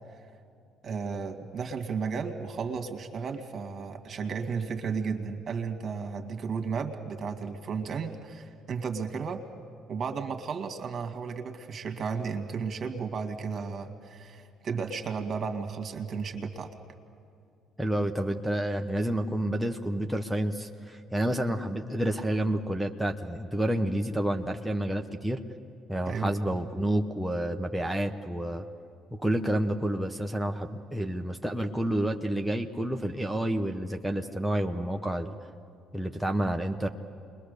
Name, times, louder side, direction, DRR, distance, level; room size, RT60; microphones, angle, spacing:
voice 1, 0.8-9.4 9.9-16.7 26.1-26.3, right 5 dB, 50° right, 5 dB, 2.1 m, -34 dB
voice 2, 17.8-25.4 25.9-28.6 29.2-35.3 35.9-36.9, right 1 dB, ahead, 3 dB, 1.2 m, -29 dB
28.0 x 21.5 x 6.8 m, 2.4 s
hypercardioid pair, 60°, 0 cm